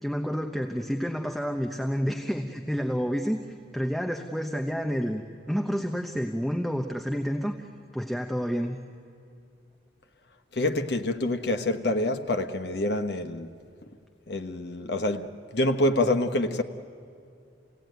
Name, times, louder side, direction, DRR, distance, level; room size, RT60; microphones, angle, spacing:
voice 1, 0.0-7.7 7.9-8.8, equal, ahead, 0.9 m, -29 dB
voice 2, 10.5-13.5 14.3-15.3 15.5-16.6, left 1 dB, 60° left, 1.2 m, -26 dB
28.5 x 17.5 x 9.4 m
head